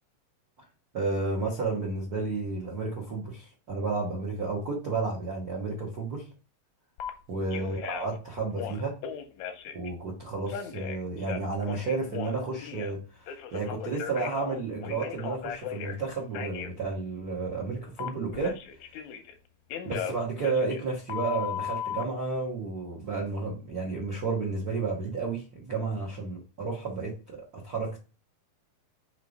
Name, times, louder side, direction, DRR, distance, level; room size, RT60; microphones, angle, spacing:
voice 1, 0.9-6.3 7.3-9.0 9.7-18.6 19.8-28.0, right 3 dB, 60° right, 0.9 m, -32 dB
Telephone, 7.0-7.1 7.5-8.2 8.5-9.9 10.5-13.0 13.3-16.0 16.3-16.7 18.0-19.4 19.7-22.0, left 9 dB, 80° left, 1.7 m, -37 dB
5.5 x 3.3 x 5.2 m
omnidirectional pair, 4.0 m